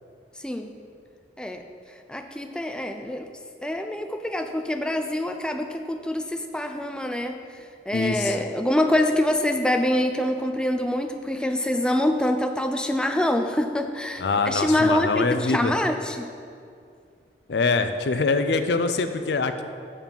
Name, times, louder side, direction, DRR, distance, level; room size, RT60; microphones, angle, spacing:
voice 1, 0.4-0.8 1.4-1.7 2.1-3.3 3.6-7.4 7.9-16.3, left 1 dB, 5° left, 5 dB, 0.4 m, -25 dB
voice 2, 7.9-8.4 14.2-15.7 17.5-19.6, left 4 dB, 70° left, 9 dB, 0.5 m, -24 dB
7.4 x 7.2 x 5.4 m, 2.4 s
head